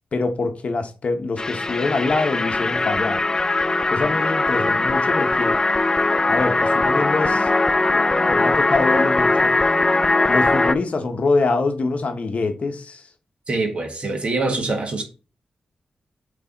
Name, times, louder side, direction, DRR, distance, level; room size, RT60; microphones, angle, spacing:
voice 1, 0.1-3.2 3.9-5.6 6.3-7.5 7.9-9.5 10.3-13.0, left 3 dB, 55° left, 0.9 m, -24 dB
sound 1, 1.4-10.8, left 2 dB, 25° left, 0.3 m, -20 dB
voice 2, 13.5-15.0, right 3 dB, 45° right, 1.6 m, -24 dB
8.1 x 3.3 x 3.9 m
wide cardioid pair, 105°, 3 cm